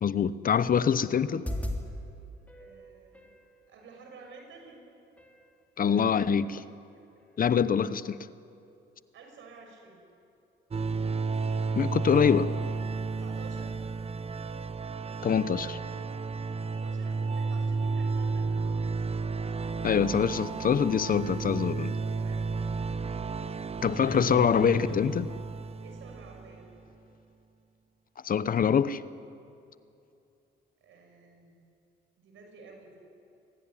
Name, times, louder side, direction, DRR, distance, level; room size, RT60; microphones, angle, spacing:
voice 1, 0.0-1.5 5.8-6.6 7.4-8.2 11.8-12.5 15.2-15.8 19.8-21.9 23.8-25.3 28.2-29.0, left 7 dB, 45° left, 0.9 m, -25 dB
sound 1, 1.3-1.8 2.5-3.4 4.5-4.6 5.2-5.5 5.8-6.1 6.5-6.6, left 1 dB, 5° left, 3.2 m, -37 dB
voice 2, 2.5-3.3 3.7-4.8 7.4-7.6 9.1-10.0 13.2-13.7 16.6-18.7 21.9-22.8 24.0-24.5 25.8-26.7 30.8-31.7 32.2-33.0, right 4 dB, 75° right, 6.5 m, -51 dB
sound 2, 10.7-26.6, right 4 dB, 30° right, 0.9 m, -32 dB
24.0 x 17.0 x 10.0 m
cardioid pair, 90°, 20 cm